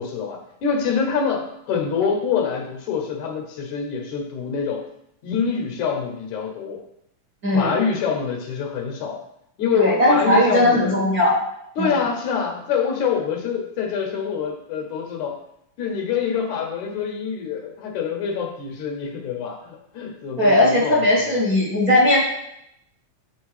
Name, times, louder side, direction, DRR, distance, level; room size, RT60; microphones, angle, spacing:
voice 1, 0.0-4.9 5.2-6.8 7.5-9.2 9.6-10.9 11.8-15.4 15.8-21.4, left 6 dB, 70° left, 2 dB, 2.3 m, -25 dB
voice 2, 7.4-7.8 9.7-11.4 11.8-12.0 20.4-22.2, left 1 dB, 40° right, -6 dB, 1.3 m, -18 dB
8.1 x 4.6 x 4.8 m, 0.79 s
omnidirectional pair, 3.6 m